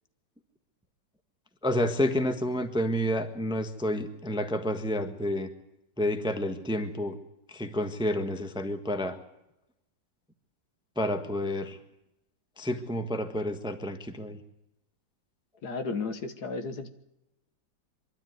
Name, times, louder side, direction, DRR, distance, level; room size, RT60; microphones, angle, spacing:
voice 1, 1.6-5.5 6.0-7.2 7.5-9.2 11.0-11.8 12.6-14.4, left 1 dB, 5° right, 7 dB, 1.1 m, -29 dB
voice 2, 15.6-16.9, left 4 dB, 60° left, 8 dB, 1.8 m, -33 dB
24.0 x 12.5 x 9.4 m, 0.88 s
omnidirectional pair, 2.0 m